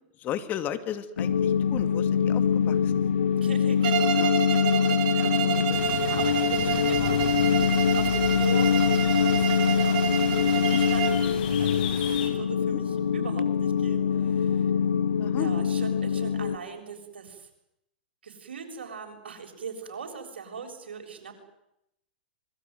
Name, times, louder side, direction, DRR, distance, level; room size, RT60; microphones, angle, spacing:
voice 1, 0.2-2.9 4.2-4.4 5.2-5.8 6.8-6.9 10.7-10.8 12.6-12.8 15.2-15.5, left 10 dB, 30° left, 11 dB, 2.4 m, -35 dB
sound 1, 1.2-16.6, left 7 dB, 75° left, 2.1 m, -24 dB
voice 2, 3.4-4.2 4.5-5.5 6.0-7.2 8.0-14.7 15.4-17.5 18.2-21.4, right 5 dB, 75° right, 4 dB, 7.1 m, -40 dB
Bowed string instrument, 3.8-11.3, right 10 dB, 55° right, 3.7 m, -29 dB
sound 2, 5.7-12.3, left 9 dB, 55° left, 7.4 m, -37 dB
26.0 x 22.0 x 9.5 m, 0.82 s
hypercardioid pair, 115°, 6 cm